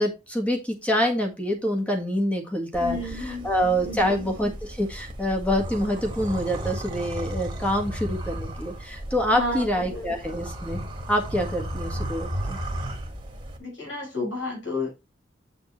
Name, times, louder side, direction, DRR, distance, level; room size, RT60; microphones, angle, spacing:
voice 1, 0.0-10.8 11.1-12.6, equal, 5° left, 1.7 m, -26 dB
sound 1, 2.7-13.6, right 1 dB, 25° right, 1.6 m, -34 dB
voice 2, 2.8-3.5 3.8-4.3 9.3-9.7 9.9-10.1 13.6-14.9, left 2 dB, 75° left, 5.0 m, -31 dB
8.0 x 6.7 x 3.2 m
head